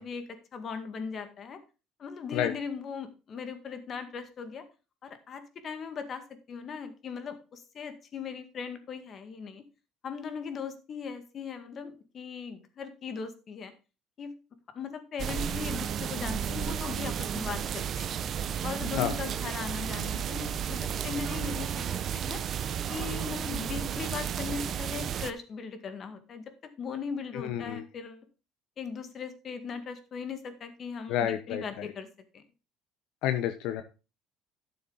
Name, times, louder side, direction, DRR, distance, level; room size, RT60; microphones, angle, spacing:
voice 1, 0.0-1.6 2.0-4.6 5.0-6.2 6.5-9.6 10.0-13.7 14.2-14.3 14.7-18.2 18.6-22.4 22.9-28.3 28.8-32.1 32.3-32.4, left 6 dB, 40° left, 8 dB, 1.9 m, -39 dB
sound 1, 15.2-25.3, right 8 dB, 45° right, 0.8 m, -33 dB
voice 2, 27.3-27.8 31.1-31.9 33.2-33.8, left 10 dB, 75° left, 9 dB, 0.9 m, -30 dB
12.5 x 6.9 x 4.0 m, 0.31 s
cardioid pair, 115°, 0 cm